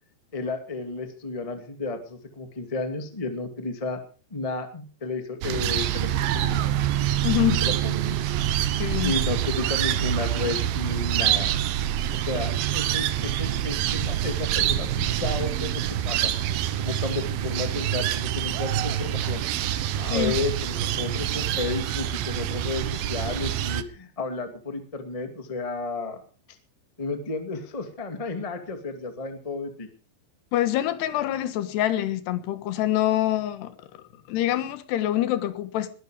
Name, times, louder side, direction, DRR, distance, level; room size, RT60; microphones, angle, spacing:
voice 1, 0.3-4.0 4.3-6.6 7.6-8.0 9.0-11.6 12.1-16.3 16.8-19.4 20.0-26.2 27.0-29.9, left 3 dB, 35° left, 0.5 m, -32 dB
sound 1, 5.4-23.8, right 11 dB, 70° right, 2.3 m, -26 dB
voice 2, 7.2-7.6 8.1-8.2 8.8-9.1 20.1-20.3 30.5-33.7 34.3-35.9, left 13 dB, 70° left, 3.2 m, -25 dB
21.0 x 12.0 x 5.0 m
omnidirectional pair, 5.2 m